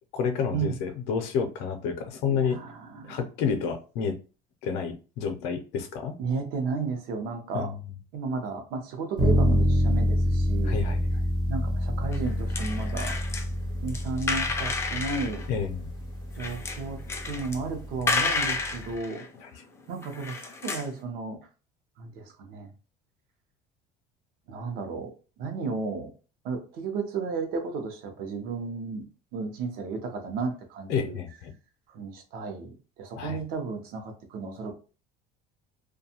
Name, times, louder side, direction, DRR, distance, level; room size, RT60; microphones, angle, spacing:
voice 1, 0.1-2.6 3.0-4.2 4.6-6.2 7.5-7.9 10.6-11.0 15.5-15.9 19.4-19.5 30.9-31.5 33.2-33.4, left 6 dB, 75° left, 6 dB, 0.5 m, -30 dB
voice 2, 2.3-3.2 6.2-7.7 8.1-10.8 11.5-13.1 13.8-15.4 16.3-17.0 17.2-19.3 19.9-21.4 22.0-22.7 24.5-25.1 25.4-26.1 26.4-29.1 29.3-31.2 31.9-34.7, right 4 dB, 60° right, 5 dB, 0.7 m, -33 dB
sound 1, 9.2-18.9, equal, 25° right, 0.6 m, -27 dB
sound 2, 12.1-13.5 13.9-15.5 16.4-17.6 18.0-19.6 19.9-21.0, left 4 dB, 15° left, 0.3 m, -31 dB
2.5 x 2.2 x 2.8 m, 0.35 s
cardioid pair, 160°, 17 cm